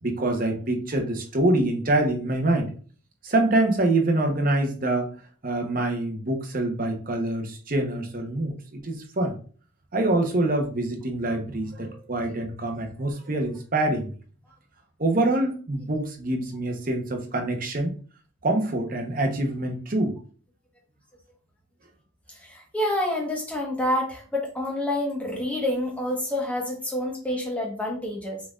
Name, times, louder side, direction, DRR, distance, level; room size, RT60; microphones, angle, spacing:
voice 1, 0.0-2.7 3.2-5.1 5.4-9.3 9.9-14.1 15.0-17.9 18.4-20.1, right 2 dB, 40° right, 3 dB, 0.9 m, -25 dB
voice 2, 22.3-28.4, left 1 dB, 5° left, -1 dB, 1.2 m, -28 dB
5.9 x 3.7 x 2.4 m, 0.41 s
head